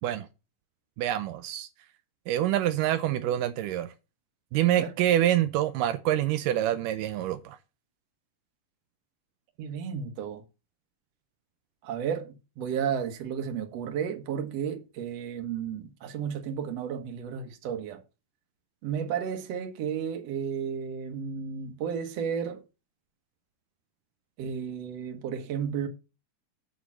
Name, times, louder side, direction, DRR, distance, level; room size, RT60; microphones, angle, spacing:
voice 1, 1.0-1.7 2.3-3.9 4.5-7.6, right 12 dB, 85° right, 2.3 m, -26 dB
voice 2, 9.6-10.4 11.8-18.0 18.8-22.6 24.4-25.9, right 7 dB, 60° right, 2.2 m, -33 dB
8.2 x 4.7 x 7.3 m
omnidirectional pair, 3.7 m